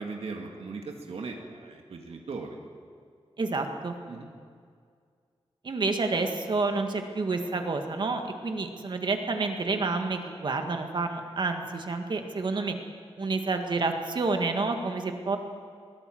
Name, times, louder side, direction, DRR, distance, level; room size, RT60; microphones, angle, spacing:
voice 1, 0.0-2.6 4.1-4.3, right 4 dB, 80° right, 2 dB, 2.0 m, -38 dB
voice 2, 3.4-3.9 5.6-12.8 13.2-15.4, right 3 dB, 50° right, 5 dB, 1.9 m, -29 dB
21.5 x 17.0 x 7.8 m, 2.1 s
wide cardioid pair, 145°, 10 cm